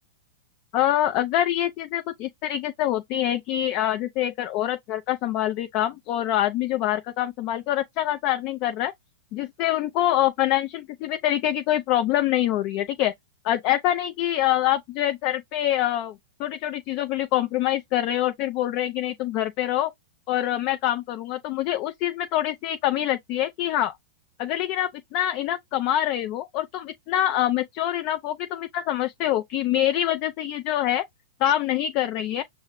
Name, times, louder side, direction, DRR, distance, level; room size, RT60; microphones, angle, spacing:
voice 1, 0.7-8.9 9.3-13.1 13.4-19.9 20.3-23.9 24.4-31.1 31.4-32.4, left 12 dB, 45° left, 0.4 m, -25 dB
5.4 x 2.0 x 3.0 m
hypercardioid pair, 125°, 0 cm